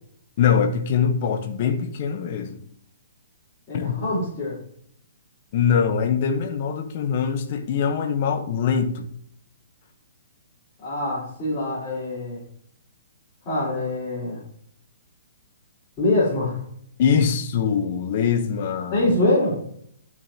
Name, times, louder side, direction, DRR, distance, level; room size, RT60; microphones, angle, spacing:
voice 1, 0.4-2.6 3.7-4.0 5.5-9.1 17.0-19.0, left 7 dB, 40° left, 0.9 m, -23 dB
voice 2, 3.7-4.6 10.8-12.4 13.5-14.4 16.0-16.6 18.9-19.6, left 2 dB, 20° left, 3.6 m, -24 dB
11.0 x 6.2 x 2.8 m
hypercardioid pair, 165°, 0 cm